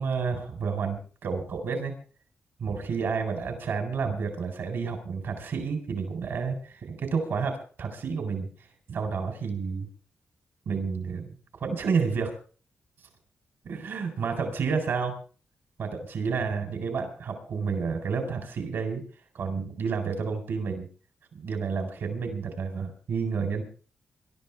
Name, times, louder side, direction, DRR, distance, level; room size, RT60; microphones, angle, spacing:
voice 1, 0.0-1.9 2.6-8.5 8.9-9.9 10.7-11.3 11.6-12.3 13.6-15.1 15.8-19.0 19.3-20.9 21.3-23.6, right 5 dB, 80° right, 5 dB, 4.1 m, -30 dB
22.0 x 12.5 x 3.5 m, 0.39 s
cardioid pair, 105°, 4 cm